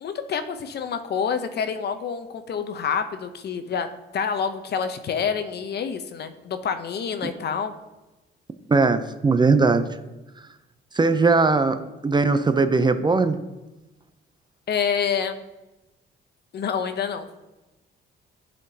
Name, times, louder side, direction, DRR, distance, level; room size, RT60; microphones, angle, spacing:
voice 1, 0.0-7.7 14.7-15.4 16.5-17.3, left 6 dB, 55° left, 9 dB, 0.7 m, -27 dB
voice 2, 8.7-9.9 10.9-13.4, right 4 dB, 20° right, 10 dB, 0.5 m, -19 dB
10.0 x 4.3 x 2.8 m, 1.1 s
cardioid pair, 90°, 20 cm